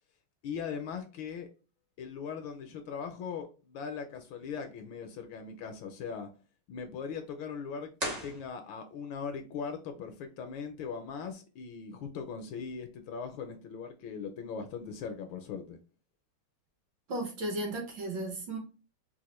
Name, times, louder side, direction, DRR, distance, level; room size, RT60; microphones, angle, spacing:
voice 1, 0.4-1.5 2.0-6.3 6.7-15.8, left 6 dB, 75° left, 6 dB, 1.2 m, -40 dB
sound 1, 7.9-9.1, right 1 dB, 35° right, 0.7 m, -38 dB
voice 2, 17.1-18.6, right 1 dB, 60° right, 1 dB, 1.6 m, -35 dB
4.1 x 2.4 x 2.9 m, 0.34 s
omnidirectional pair, 2.4 m